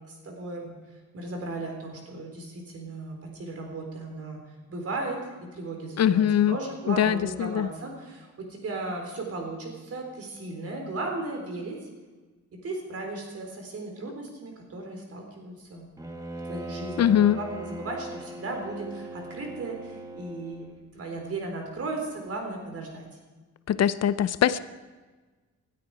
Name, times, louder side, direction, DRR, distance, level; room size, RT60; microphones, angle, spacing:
voice 1, 0.1-0.7 1.1-4.4 4.7-11.8 12.6-15.9 16.4-20.7 20.9-23.1, right 2 dB, 50° right, 2 dB, 4.1 m, -36 dB
voice 2, 6.0-6.6 6.9-7.7 17.0-17.4 23.7-24.6, left 10 dB, 60° left, 15 dB, 0.7 m, -22 dB
Bowed string instrument, 16.0-20.8, right 2 dB, 10° right, 1.6 m, -40 dB
20.5 x 12.5 x 4.9 m, 1.3 s
wide cardioid pair, 165°, 30 cm